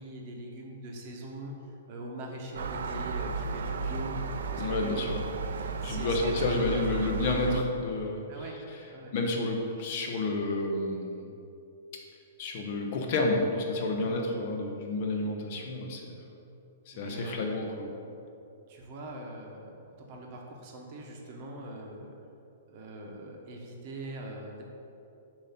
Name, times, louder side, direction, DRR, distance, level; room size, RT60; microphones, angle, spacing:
voice 1, 0.0-5.0 5.8-6.6 8.3-8.6 8.9-9.1 14.0-14.1 16.9-17.6 18.7-22.2 22.7-24.6, right 1 dB, 35° right, 0 dB, 0.8 m, -42 dB
Gull seagull, 2.5-7.6, right 4 dB, 75° right, 0.4 m, -34 dB
voice 2, 4.6-5.2 5.8-8.2 9.1-11.3 12.4-16.2 16.9-17.9, left 2 dB, 45° left, 1 dB, 0.7 m, -30 dB
7.0 x 2.7 x 5.6 m, 2.8 s
hypercardioid pair, 165°, 0 cm